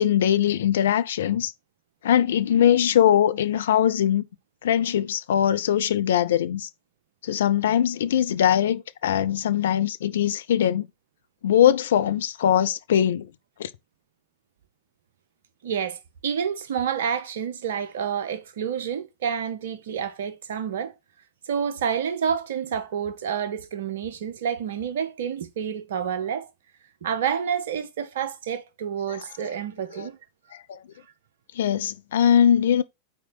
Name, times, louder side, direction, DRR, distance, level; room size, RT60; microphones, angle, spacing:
voice 1, 0.0-1.5 2.0-4.2 4.6-6.7 7.2-10.9 11.4-13.3 13.6-13.7 29.1-29.2 29.9-30.1 30.7-30.8 31.6-32.8, left 10 dB, 60° left, 0.5 m, -21 dB
voice 2, 15.6-20.9 21.5-26.5 27.0-30.2, right 8 dB, 60° right, 0.8 m, -29 dB
4.3 x 4.2 x 5.7 m
figure-of-eight pair, 90°, 0 cm